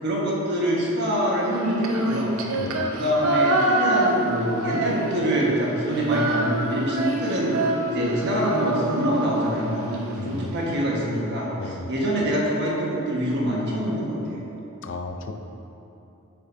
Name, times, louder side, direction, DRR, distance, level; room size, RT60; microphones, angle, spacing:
voice 1, 0.0-2.3 2.9-7.6 7.9-14.4, equal, 55° right, -4 dB, 1.4 m, -25 dB
Female singing, 1.5-5.4 5.7-10.0, right 2 dB, 90° right, 0.7 m, -26 dB
voice 2, 2.6-2.9 10.2-10.6 11.6-11.9 14.8-15.3, left 3 dB, 60° left, 4 dB, 0.5 m, -34 dB
9.6 x 6.7 x 2.7 m, 2.9 s
head